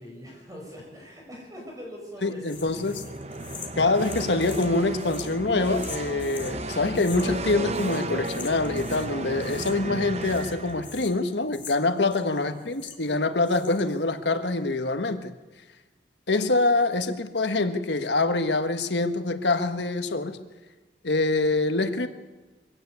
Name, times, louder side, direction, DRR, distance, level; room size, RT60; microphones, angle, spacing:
voice 1, 0.0-3.6 12.3-12.6, equal, 20° right, -1 dB, 7.3 m, -43 dB
voice 2, 2.2-3.1 3.8-15.3 16.3-20.4 21.0-22.1, left 2 dB, 80° left, 8 dB, 1.4 m, -25 dB
sound 1, 2.5-6.6 6.9-7.5 7.7-9.1 9.4-10.0 10.2-13.2 13.4-14.0, left 7 dB, 25° left, 2.1 m, -44 dB
sound 2, 2.5-11.2, right 2 dB, 35° right, 1.0 m, -34 dB
23.5 x 17.0 x 8.3 m, 1.2 s
head